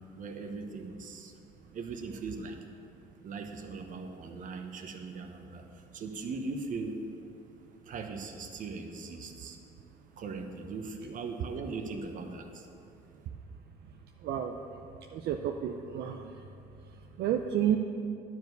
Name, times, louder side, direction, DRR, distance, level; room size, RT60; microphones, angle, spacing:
voice 1, 0.0-1.3 1.7-2.6 3.2-7.0 7.9-9.6 10.2-12.7, right 4 dB, 50° right, 5 dB, 1.0 m, -39 dB
voice 2, 15.1-16.3 17.2-17.8, right 10 dB, 70° right, 4 dB, 0.5 m, -30 dB
10.5 x 4.8 x 7.9 m, 2.7 s
cardioid pair, 110°, 17 cm